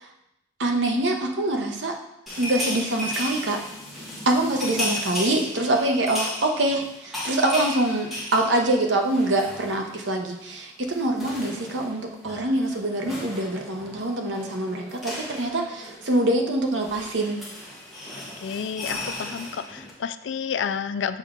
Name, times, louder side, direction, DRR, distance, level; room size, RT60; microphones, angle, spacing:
voice 1, 0.6-1.9 2.4-3.6 4.0-17.4, right 1 dB, 75° right, 2 dB, 0.9 m, -25 dB
sound 1, 2.3-10.1 10.4-10.6 10.8-19.9, left 1 dB, ahead, 1.4 m, -35 dB
voice 2, 18.4-21.2, left 7 dB, 70° left, 12 dB, 0.3 m, -30 dB
6.7 x 4.6 x 3.7 m, 0.83 s
head